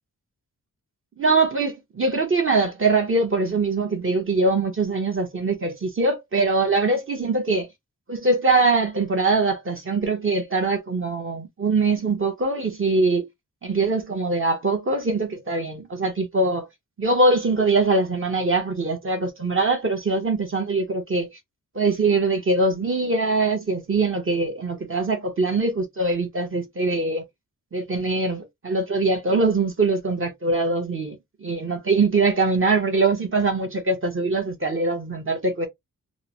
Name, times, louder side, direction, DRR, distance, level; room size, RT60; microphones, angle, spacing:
voice 1, 1.2-7.7 8.1-13.3 13.6-16.7 17.0-21.3 21.7-27.2 27.7-31.2 31.4-35.7, right 3 dB, 35° right, 0.8 m, -22 dB
3.7 x 2.0 x 2.7 m
wide cardioid pair, 170°, 35 cm